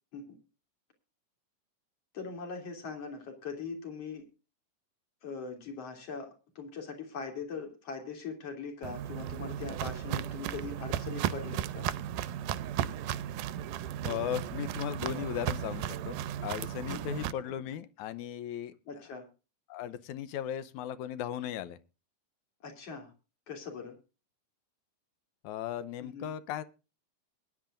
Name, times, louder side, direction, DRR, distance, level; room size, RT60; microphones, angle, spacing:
voice 1, 2.1-4.2 5.2-11.9 16.9-17.2 18.9-19.3 22.6-23.1 23.5-24.0 26.0-26.3, left 5 dB, 50° left, 3 dB, 4.0 m, -41 dB
Walk footsteps, 8.8-17.3, right 11 dB, 90° right, 2.3 m, -35 dB
voice 2, 14.0-18.7 19.7-21.8 25.4-26.6, left 10 dB, 80° left, 15 dB, 2.1 m, -37 dB
21.5 x 10.5 x 2.5 m, 0.32 s
omnidirectional pair, 3.6 m